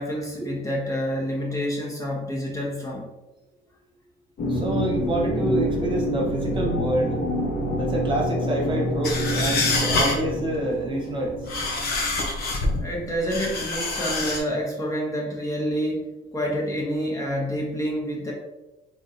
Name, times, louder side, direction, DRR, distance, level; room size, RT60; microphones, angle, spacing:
voice 1, 0.0-3.1 12.8-16.1 16.3-18.3, equal, 20° left, -3 dB, 1.0 m, -28 dB
sound 1, 4.4-12.9, equal, 50° left, 1.2 m, -27 dB
voice 2, 4.5-7.2 7.8-11.5, right 1 dB, 30° right, -2 dB, 1.2 m, -27 dB
sound 2, 9.0-10.3 11.3-12.8 13.3-14.4, left 3 dB, 70° left, 0.9 m, -26 dB
3.7 x 3.6 x 2.7 m, 1.0 s
cardioid pair, 110°, 17 cm